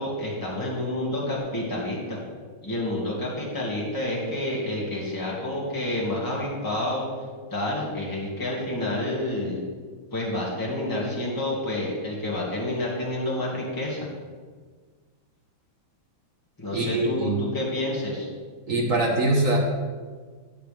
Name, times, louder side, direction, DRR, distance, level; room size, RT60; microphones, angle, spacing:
voice 1, 0.0-2.2 2.6-7.1 7.5-9.6 10.1-14.1 16.6-18.3, left 1 dB, 10° left, -5 dB, 1.9 m, -29 dB
voice 2, 16.7-17.4 18.7-19.6, right 2 dB, 45° right, -1 dB, 1.4 m, -23 dB
12.0 x 7.7 x 3.5 m, 1.5 s
omnidirectional pair, 2.3 m